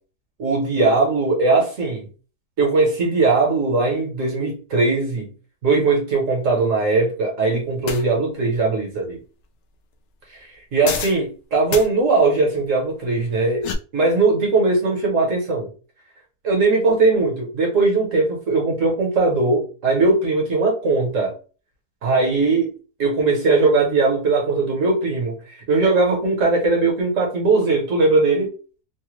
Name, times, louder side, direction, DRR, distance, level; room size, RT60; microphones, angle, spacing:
voice 1, 0.4-2.1 2.6-5.3 5.6-9.2 10.4-13.6 13.9-15.7 16.4-21.3 22.0-22.7 23.0-28.5, right 3 dB, 55° right, 0 dB, 1.1 m, -19 dB
sound 1, 7.9-8.0 10.8-11.2 11.7-11.9 13.3-13.7, left 6 dB, 80° left, 0.6 m, -27 dB
3.2 x 2.1 x 3.0 m, 0.37 s
omnidirectional pair, 1.8 m